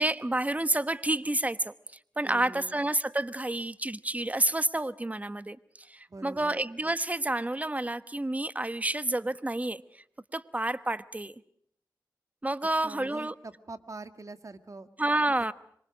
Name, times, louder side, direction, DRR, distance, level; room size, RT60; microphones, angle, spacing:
voice 1, 0.0-1.7 2.2-10.0 10.3-11.3 12.4-13.3 15.0-15.5, right 1 dB, 20° right, 14 dB, 1.0 m, -29 dB
voice 2, 2.2-2.8 6.1-6.6 12.8-14.9, right 3 dB, 45° right, 10 dB, 1.9 m, -44 dB
26.0 x 24.0 x 6.2 m, 0.67 s
cardioid pair, 50°, 7 cm